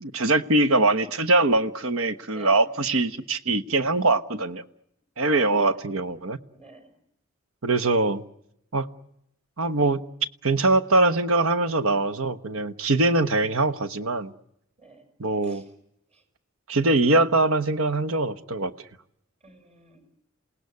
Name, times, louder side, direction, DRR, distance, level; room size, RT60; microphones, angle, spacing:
voice 1, 0.0-4.6 5.2-6.4 7.6-8.2 8.7-8.9 9.6-10.0 10.4-14.3 15.2-15.6 16.7-18.7, right 2 dB, 85° right, 1.2 m, -22 dB
voice 2, 2.3-2.7 5.2-5.9 6.5-6.9 14.8-15.1 15.4-15.7 16.1-16.2 19.4-20.1, right 3 dB, 35° right, 6.2 m, -50 dB
28.5 x 18.5 x 9.6 m
head